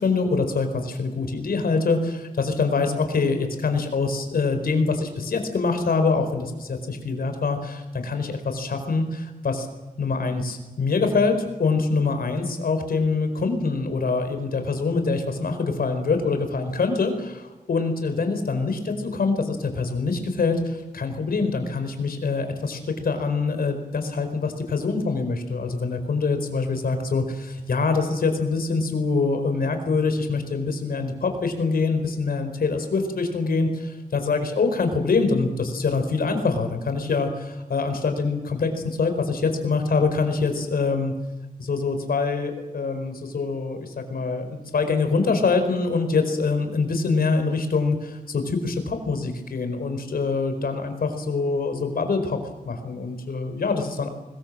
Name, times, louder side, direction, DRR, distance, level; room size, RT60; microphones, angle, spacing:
voice 1, 0.0-9.7 10.0-41.1 41.6-52.4 52.6-54.1, left 4 dB, 90° left, 7 dB, 4.6 m, -24 dB
25.0 x 21.0 x 7.6 m, 1.1 s
wide cardioid pair, 170°, 15 cm